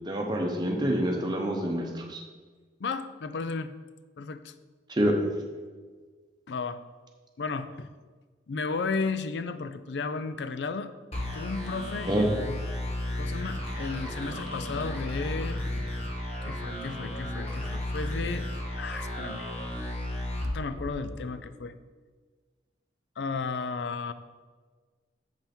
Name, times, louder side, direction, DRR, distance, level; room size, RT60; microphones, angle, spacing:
voice 1, 0.1-2.2 4.9-5.1 12.0-12.3, right 1 dB, 25° right, 2 dB, 0.9 m, -27 dB
voice 2, 2.8-3.7 4.2-4.5 6.5-6.8 7.4-7.9 8.5-10.9 11.3-12.6 13.1-15.6 16.4-18.5 18.8-19.5 20.4-21.7 23.2-24.1, left 4 dB, 80° left, 12 dB, 0.4 m, -34 dB
sound 1, 11.1-21.4, left 1 dB, 35° left, 1.3 m, -34 dB
7.6 x 5.6 x 4.4 m, 1.4 s
head